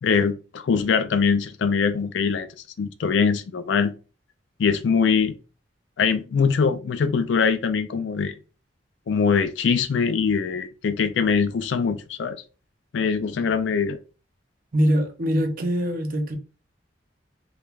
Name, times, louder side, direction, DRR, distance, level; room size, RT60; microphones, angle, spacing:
voice 1, 0.0-2.5 2.8-3.9 4.6-5.3 6.0-8.3 9.1-12.4 12.9-14.0, left 5 dB, 75° left, 0.4 m, -22 dB
voice 2, 14.7-16.4, equal, 50° right, 0.5 m, -23 dB
3.1 x 2.2 x 2.3 m
head